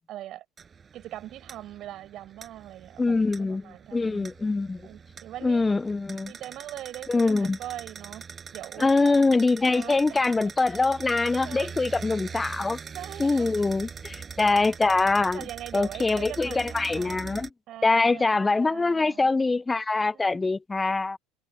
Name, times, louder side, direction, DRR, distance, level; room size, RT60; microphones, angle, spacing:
voice 1, 0.1-0.4 0.9-4.3 4.8-5.6 6.3-8.2 8.5-8.9 9.7-10.4 10.7-10.9 11.4-11.7 12.5-12.6 12.9-13.5 15.1-17.2 17.7-19.3 20.1-20.5, right 13 dB, 55° right, 7.4 m, -41 dB
sound 1, 0.6-17.5, right 6 dB, 30° right, 5.8 m, -43 dB
voice 2, 3.0-4.9 5.4-6.3 7.1-7.6 8.8-12.8 13.2-15.4 15.7-17.5 17.8-21.2, left 3 dB, 15° left, 0.6 m, -24 dB
hypercardioid pair, 85°, 0 cm